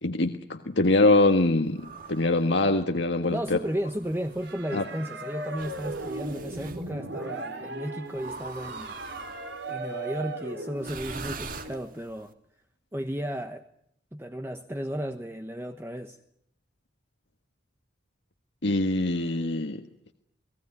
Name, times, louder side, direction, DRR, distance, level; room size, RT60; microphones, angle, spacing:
voice 1, 0.0-3.6 4.7-4.8 18.6-19.8, left 2 dB, 75° left, 1.6 m, -23 dB
sound 1, 1.7-2.4 3.4-4.6 5.5-6.8 8.1-9.7 10.8-12.2, right 4 dB, 45° right, 2.6 m, -42 dB
voice 2, 3.3-9.0 9.7-12.3 12.9-13.6 14.1-16.2, equal, 15° right, 1.1 m, -34 dB
sound 2, 4.4-11.8, right 2 dB, 70° right, 5.0 m, -38 dB
29.5 x 19.5 x 9.8 m
head